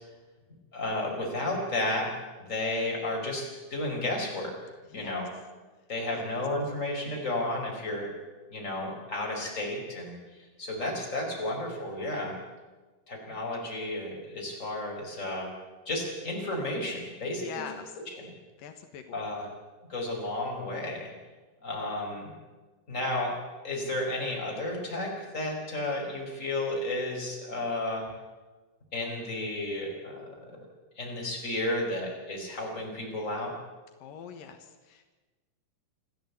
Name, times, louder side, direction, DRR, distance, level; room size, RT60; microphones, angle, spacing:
voice 1, 0.7-2.1 2.5-4.5 4.9-5.3 5.9-8.1 8.5-12.3 13.1-15.5 15.8-17.6 19.1-19.5 19.9-21.1 21.6-22.3 22.9-23.3 23.6-28.0 28.9-30.6 31.0-33.5, left 1 dB, 20° left, 0 dB, 5.1 m, -32 dB
voice 2, 4.9-5.3 6.1-6.4 17.4-18.0 18.6-19.2 34.0-35.1, left 7 dB, 85° left, 7 dB, 3.1 m, -44 dB
26.5 x 13.5 x 8.2 m, 1.3 s
omnidirectional pair, 3.9 m